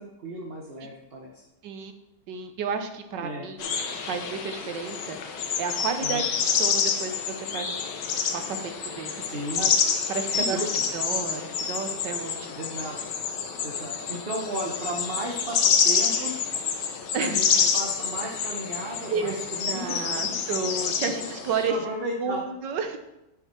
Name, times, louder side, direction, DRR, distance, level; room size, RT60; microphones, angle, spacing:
voice 1, 0.0-1.4 3.2-3.5 6.0-6.2 9.3-9.7 10.3-10.8 12.5-13.0 13.6-16.5 17.2-20.4 21.0-21.1 21.7-22.4, right 1 dB, 40° right, 0 dB, 1.0 m, -34 dB
voice 2, 2.3-3.7 4.0-7.9 8.3-9.7 10.1-12.6 17.1-17.4 19.1-19.4 19.7-21.8 22.2-23.0, right 5 dB, 90° right, 7 dB, 1.5 m, -32 dB
sound 1, 3.6-21.7, left 6 dB, 80° left, 1.6 m, -28 dB
9.6 x 6.4 x 4.3 m, 0.91 s
omnidirectional pair, 1.9 m